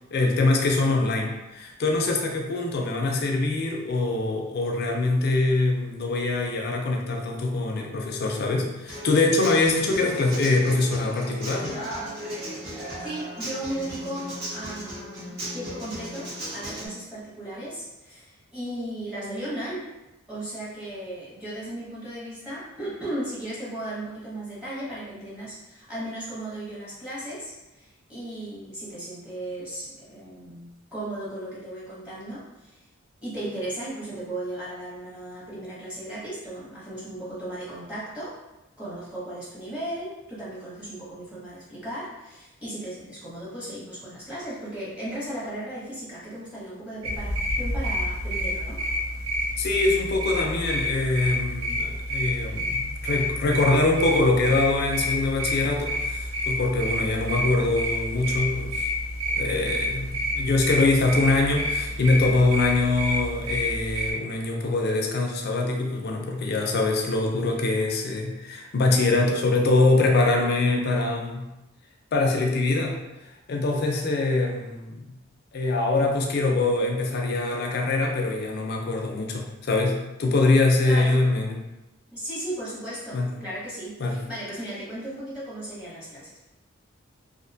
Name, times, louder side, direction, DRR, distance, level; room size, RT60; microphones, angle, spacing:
voice 1, 0.1-11.8 49.6-58.9 59.4-71.4 72.1-73.0 73.5-75.2 75.5-81.6 83.1-83.3 84.0-84.2, left 2 dB, 50° left, 1 dB, 0.4 m, -24 dB
Human voice / Acoustic guitar, 8.9-16.9, equal, 50° right, 0.8 m, -36 dB
voice 2, 13.0-19.8 20.3-32.8 33.2-38.3 38.8-48.8 80.8-81.2 82.1-86.4, right 1 dB, 5° right, -9 dB, 0.7 m, -36 dB
sound 1, 47.0-64.1, equal, 85° right, 0.4 m, -29 dB
2.5 x 2.1 x 2.6 m, 0.99 s
head